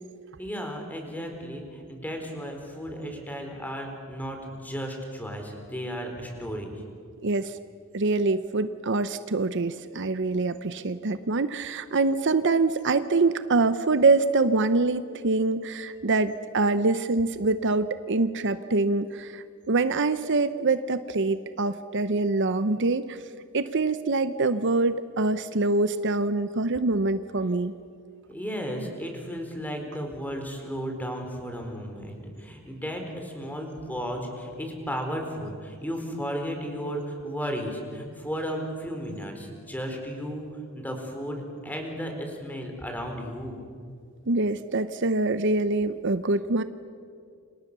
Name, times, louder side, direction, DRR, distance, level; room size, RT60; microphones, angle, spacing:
voice 1, 0.4-6.8 28.3-40.5 40.7-43.6, equal, 10° left, 3 dB, 4.4 m, -34 dB
voice 2, 7.2-7.6 7.9-23.2 23.5-27.7 44.3-46.6, right 3 dB, 55° right, 12 dB, 0.8 m, -25 dB
29.5 x 26.5 x 6.9 m, 2.3 s
head